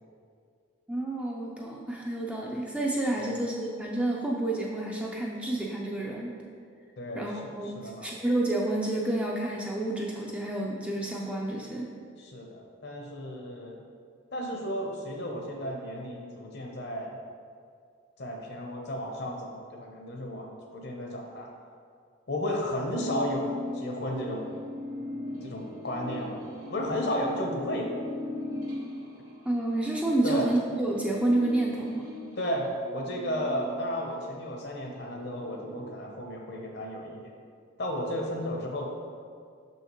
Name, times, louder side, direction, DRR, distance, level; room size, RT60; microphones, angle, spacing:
voice 1, 0.9-6.3 7.1-11.9 29.5-32.1, right 2 dB, 5° right, -2 dB, 0.4 m, -29 dB
voice 2, 7.0-8.1 12.2-13.8 14.3-17.2 18.2-21.5 22.3-24.5 25.4-26.4 26.7-27.9 30.2-30.5 32.4-37.2 37.8-38.9, equal, 50° left, 1 dB, 0.8 m, -33 dB
sound 1, 23.0-34.4 34.8-35.9, left 2 dB, 80° right, 1.1 m, -39 dB
6.2 x 5.6 x 3.0 m, 2.2 s
head